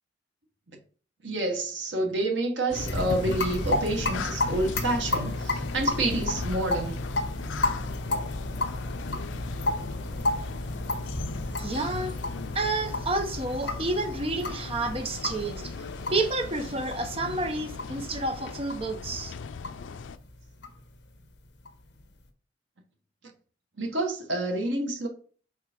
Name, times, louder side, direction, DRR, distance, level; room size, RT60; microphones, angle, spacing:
voice 1, 1.2-7.0 23.8-25.1, right 2 dB, 75° right, 1.3 m, -28 dB
sound 1, 2.7-20.2, left 5 dB, 90° left, 0.4 m, -39 dB
sound 2, 2.7-22.0, left 2 dB, 65° left, 1.0 m, -32 dB
voice 2, 11.6-12.2 12.5-15.7 16.1-19.3, right 2 dB, 30° right, 0.8 m, -30 dB
4.7 x 3.9 x 5.1 m
head